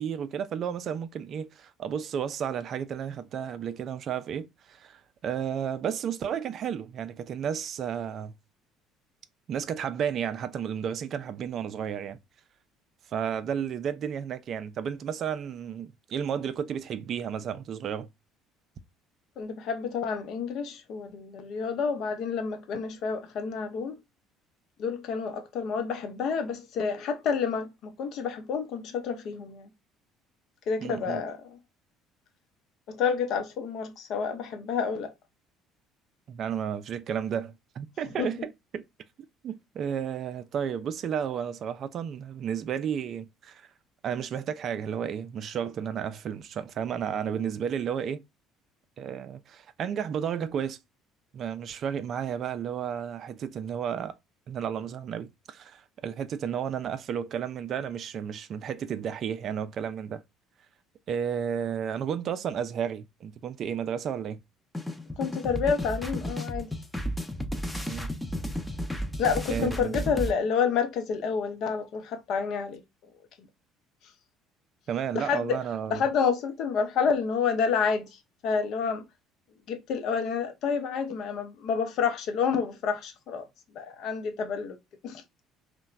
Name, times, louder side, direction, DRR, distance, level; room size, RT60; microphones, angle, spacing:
voice 1, 0.0-8.3 9.5-12.2 13.1-18.1 30.8-31.2 36.3-38.8 39.4-43.7 44.0-48.2 49.0-50.8 51.3-54.2 54.5-60.2 61.1-64.4 67.9-68.1 69.5-69.9 74.9-76.0, right 8 dB, 55° right, 0.3 m, -32 dB
voice 2, 19.4-24.0 24.8-29.7 30.7-31.6 32.9-35.1 38.2-38.3 65.2-66.7 69.2-72.8 75.1-75.6 75.9-78.2 78.4-79.0 79.7-83.5 83.7-84.8 85.0-85.2, left 6 dB, 60° left, 0.6 m, -29 dB
sound 1, 64.7-70.3, equal, 10° left, 0.6 m, -33 dB
2.9 x 2.1 x 2.3 m
hypercardioid pair, 60°, 0 cm